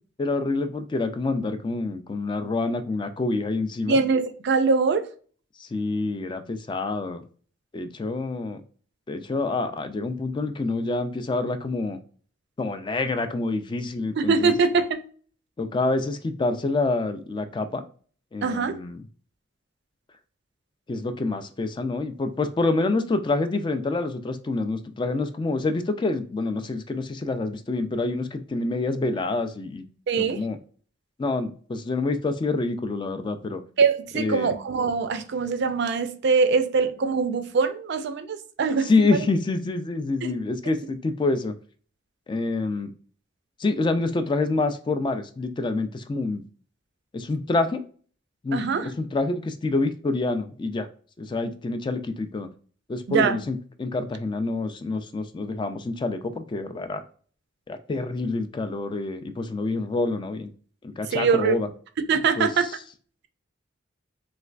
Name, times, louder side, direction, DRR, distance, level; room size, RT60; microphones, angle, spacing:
voice 1, 0.2-4.0 5.6-7.2 7.7-8.6 9.1-12.0 12.6-14.5 15.6-17.8 18.3-19.0 20.9-29.8 30.2-30.6 31.2-33.6 34.1-34.5 38.8-41.5 42.3-42.9 43.6-46.4 47.1-47.8 48.4-50.9 51.2-52.5 52.9-57.0 57.7-60.5 60.8-61.7 62.4-62.5, left 3 dB, 25° left, 0.3 m, -27 dB
voice 2, 3.9-5.1 14.2-15.0 18.4-18.8 30.1-30.4 33.8-39.3 48.5-48.9 53.1-53.4 61.1-61.5 62.1-62.7, right 5 dB, 60° right, 0.4 m, -23 dB
3.2 x 3.1 x 2.4 m
head